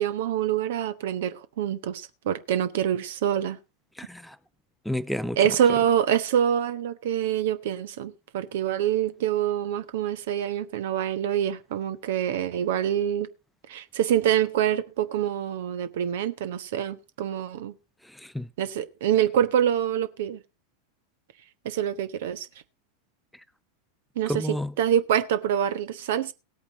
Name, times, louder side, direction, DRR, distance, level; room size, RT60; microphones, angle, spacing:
voice 1, 0.0-3.6 5.4-13.3 13.7-17.7 18.6-20.4 21.6-22.5 24.2-26.3, right 10 dB, 60° right, 1.1 m, -26 dB
voice 2, 4.0-4.4 4.8-5.6 18.0-18.5 24.3-24.7, left 1 dB, ahead, 0.6 m, -31 dB
17.5 x 8.6 x 3.9 m
figure-of-eight pair, 90°, 0 cm